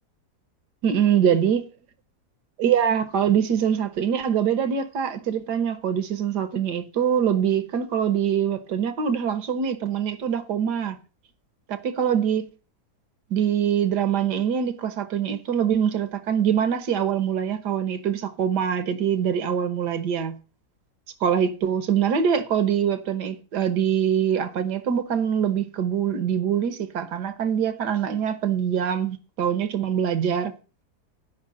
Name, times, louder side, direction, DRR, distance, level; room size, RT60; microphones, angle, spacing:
voice 1, 0.8-1.6 2.6-11.0 11.7-12.5 13.3-20.3 21.2-30.5, right 8 dB, 85° right, 1.7 m, -24 dB
10.5 x 5.6 x 7.4 m
omnidirectional pair, 1.7 m